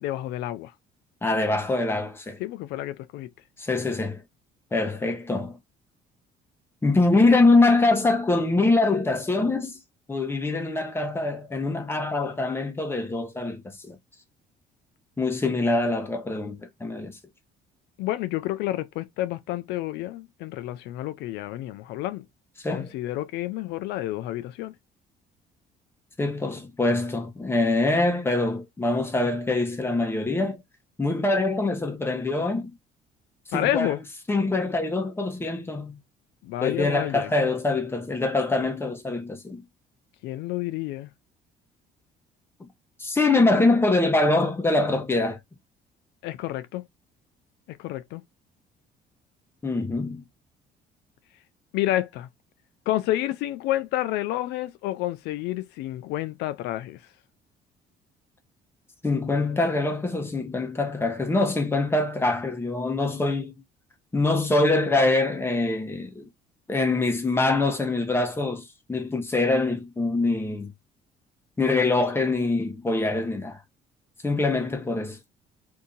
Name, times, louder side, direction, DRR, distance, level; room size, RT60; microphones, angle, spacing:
voice 1, 0.0-0.7 2.4-3.3 18.0-22.2 22.7-24.7 33.5-34.0 36.4-37.3 40.2-41.1 46.2-46.8 47.7-48.2 51.7-52.3 52.9-57.0, left 15 dB, 85° left, 0.4 m, -29 dB
voice 2, 1.2-2.4 3.6-4.2 4.7-5.6 6.8-9.8 10.1-14.0 15.2-17.2 22.6-22.9 26.2-30.6 31.0-32.7 33.5-33.9 34.3-36.0 36.6-39.6 43.0-45.4 49.6-50.2 59.0-63.5 64.1-66.3 66.7-70.7 71.6-73.6 74.2-75.2, left 2 dB, 15° left, 0.9 m, -24 dB
2.7 x 2.7 x 3.7 m
cardioid pair, 110°, 17 cm